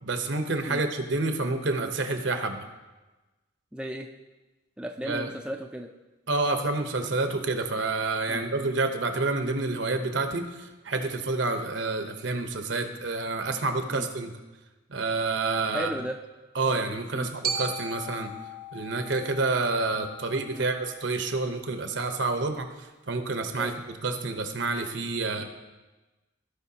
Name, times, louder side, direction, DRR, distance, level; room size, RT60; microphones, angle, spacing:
voice 1, 0.0-2.6 5.0-5.3 6.3-14.3 14.9-15.9 16.5-18.3 18.7-23.7 24.0-25.4, right 3 dB, 75° right, 6 dB, 0.9 m, -28 dB
voice 2, 3.7-4.1 4.8-5.9 8.3-8.4 13.9-14.1 15.7-16.2 17.1-17.3 20.5-20.7 23.6-23.7 25.3-25.4, equal, 5° right, 2 dB, 0.4 m, -35 dB
Glockenspiel, 17.4-21.6, right 3 dB, 50° right, 0.7 m, -37 dB
16.5 x 5.5 x 2.8 m, 1.2 s
head